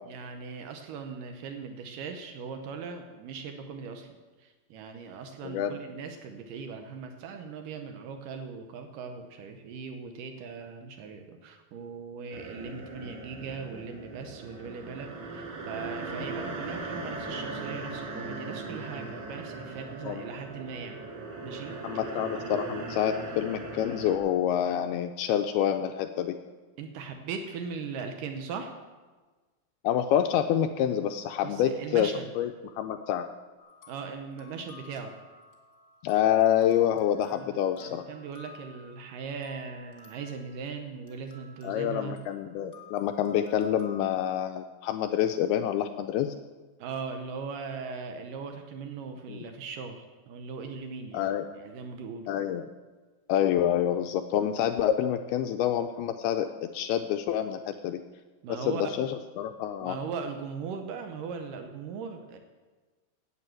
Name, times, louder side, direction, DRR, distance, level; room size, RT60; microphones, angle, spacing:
voice 1, 0.1-21.0 21.4-21.7 26.8-28.7 31.4-32.3 33.9-35.1 37.3-37.5 37.8-42.2 46.8-52.3 58.4-58.8 59.8-62.4, right 5 dB, 85° right, 6 dB, 1.9 m, -39 dB
voice 2, 5.4-5.8 20.0-20.2 21.8-26.4 29.8-33.3 36.0-38.0 41.6-46.3 49.3-49.4 51.1-51.4 52.3-52.7 53.3-58.0 58.5-60.0, left 10 dB, 85° left, 7 dB, 2.2 m, -27 dB
sound 1, 12.3-24.2, right 3 dB, 50° right, 2.2 m, -39 dB
sound 2, 33.6-44.2, left 4 dB, 40° left, 1.3 m, -54 dB
9.7 x 9.1 x 7.7 m, 1.3 s
omnidirectional pair, 4.9 m